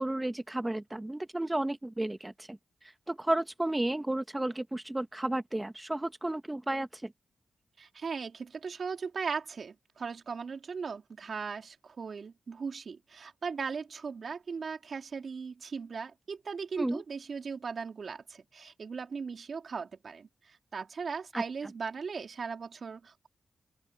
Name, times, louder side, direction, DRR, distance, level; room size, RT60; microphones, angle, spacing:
voice 1, 0.0-2.6 3.1-7.1 16.8-17.0 21.3-21.4, right 1 dB, 15° right, 1.9 m, -32 dB
voice 2, 7.8-23.3, right 5 dB, 65° right, 3.8 m, -38 dB
open air
cardioid pair, 50°, 0 cm